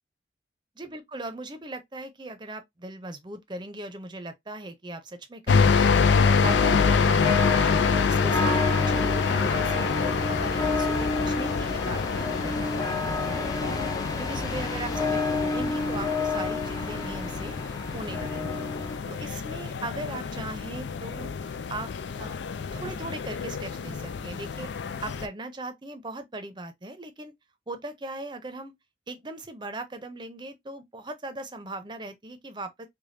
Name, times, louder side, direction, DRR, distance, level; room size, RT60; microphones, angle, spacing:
voice 1, 0.8-17.6 17.9-18.7 19.1-21.9 22.2-22.4 22.7-27.3 27.7-28.7 29.1-32.9, right 2 dB, 25° right, 0.6 m, -39 dB
sound 1, 5.5-25.3, left 5 dB, 80° left, 0.4 m, -27 dB
sound 2, 6.4-19.0, left 3 dB, 20° left, 0.5 m, -30 dB
sound 3, 7.8-12.3, equal, 40° left, 2.1 m, -46 dB
5.0 x 2.2 x 2.6 m
head